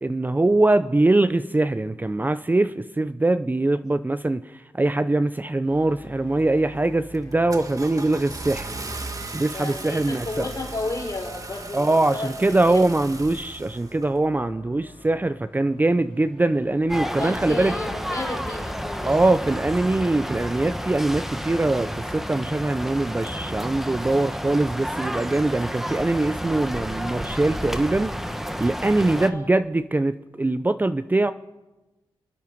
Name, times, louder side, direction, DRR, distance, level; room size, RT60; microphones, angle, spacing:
voice 1, 0.0-8.7 9.3-10.5 11.7-17.7 19.0-28.3 28.6-31.3, right 2 dB, 20° right, 11 dB, 0.5 m, -22 dB
sound 1, 5.6-25.1, left 1 dB, 70° left, 3.3 m, -47 dB
Car / Engine starting, 6.4-6.7 7.1-14.1, right 3 dB, 40° right, 1.4 m, -37 dB
voice 2, 9.5-12.8 17.2-19.1 29.1-29.5, left 2 dB, 40° left, 0 dB, 4.1 m, -33 dB
sound 2, 16.9-29.3, equal, 5° right, 1.3 m, -31 dB
28.0 x 9.5 x 5.3 m, 1.1 s
cardioid pair, 65°, 9 cm